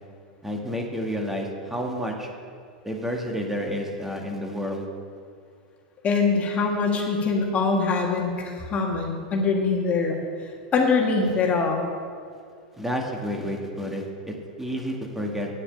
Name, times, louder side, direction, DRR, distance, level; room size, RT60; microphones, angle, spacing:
voice 1, 0.4-2.3 2.8-4.9 12.8-15.5, equal, 5° right, 0 dB, 1.8 m, -30 dB
voice 2, 6.0-10.2 10.7-11.9, left 4 dB, 30° left, 1 dB, 1.8 m, -23 dB
9.4 x 7.1 x 8.7 m, 2.2 s
hypercardioid pair, 100°, 4 cm